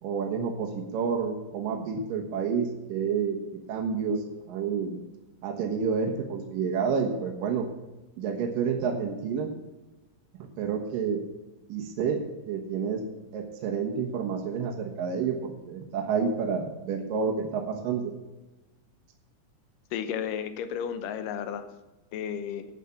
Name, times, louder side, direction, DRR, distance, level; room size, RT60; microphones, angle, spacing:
voice 1, 0.0-3.4 3.7-5.0 5.4-7.7 8.2-9.5 10.6-11.2 11.7-12.2 12.5-13.0 13.3-18.1, right 6 dB, 75° right, 1 dB, 2.9 m, -29 dB
voice 2, 19.9-21.7 22.1-22.7, left 8 dB, 75° left, 10 dB, 2.4 m, -33 dB
12.0 x 8.2 x 5.9 m, 1.1 s
omnidirectional pair, 4.0 m